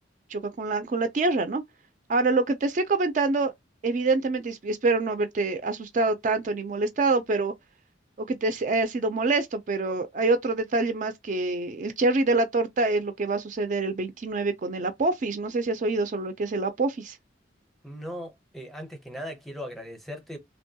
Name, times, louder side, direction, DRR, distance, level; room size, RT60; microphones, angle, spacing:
voice 1, 0.3-1.6 2.1-3.5 3.8-7.5 8.2-17.2, right 3 dB, 40° right, 0.4 m, -26 dB
voice 2, 17.8-20.4, equal, ahead, 0.6 m, -38 dB
2.9 x 2.2 x 2.7 m
head